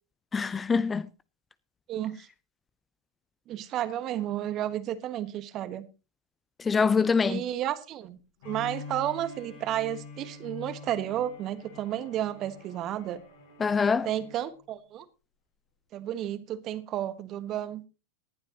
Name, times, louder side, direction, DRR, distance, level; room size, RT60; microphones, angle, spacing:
voice 1, 0.3-1.1 6.6-7.4 13.6-14.1, left 5 dB, 20° left, 0.6 m, -24 dB
voice 2, 1.9-2.3 3.5-5.9 7.2-8.2 8.4-13.2 14.0-15.1 15.9-17.8, right 12 dB, 40° right, 1.4 m, -32 dB
Bowed string instrument, 8.4-14.4, left 4 dB, 65° left, 6.9 m, -45 dB
19.0 x 11.5 x 2.9 m
figure-of-eight pair, 85°, 0 cm